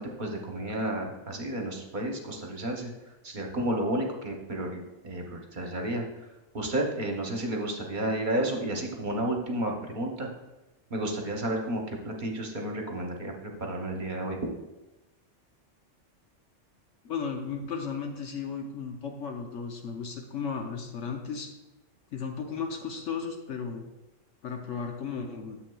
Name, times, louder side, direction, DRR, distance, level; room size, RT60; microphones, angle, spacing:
voice 1, 0.0-2.9 3.2-6.0 6.5-10.3 10.9-13.3 13.6-14.4, right 1 dB, 45° right, 1 dB, 0.9 m, -31 dB
voice 2, 17.0-21.5 22.1-23.8 24.4-25.6, left 5 dB, 75° left, 2 dB, 1.1 m, -35 dB
9.5 x 7.3 x 2.3 m, 1.0 s
omnidirectional pair, 1.3 m